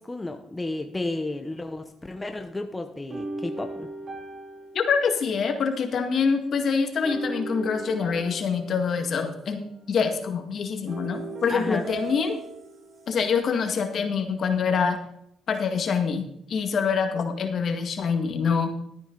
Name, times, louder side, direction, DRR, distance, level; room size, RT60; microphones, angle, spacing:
voice 1, 0.0-3.9 11.5-11.8, left 2 dB, 15° left, 6 dB, 1.0 m, -32 dB
sound 1, 3.1-5.6 7.0-9.5 10.9-13.3, right 2 dB, 45° right, 2.7 m, -37 dB
voice 2, 4.7-9.6 9.9-12.4 13.1-15.0 15.5-18.7, left 5 dB, 55° left, 5 dB, 1.9 m, -25 dB
13.0 x 9.6 x 3.9 m, 0.74 s
cardioid pair, 90°, 0 cm